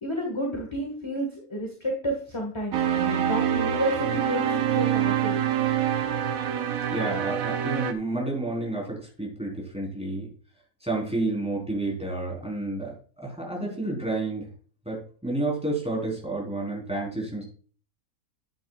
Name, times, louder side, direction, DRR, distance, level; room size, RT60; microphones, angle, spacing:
voice 1, 0.0-4.4 4.8-5.4, right 1 dB, 20° left, 0 dB, 1.7 m, -30 dB
sound 1, 2.7-7.9, right 9 dB, 75° right, 1.2 m, -25 dB
voice 2, 6.9-10.3 10.8-14.5 14.9-17.4, right 2 dB, 5° right, -3 dB, 4.0 m, -30 dB
10.0 x 9.2 x 2.4 m, 0.42 s
omnidirectional pair, 1.5 m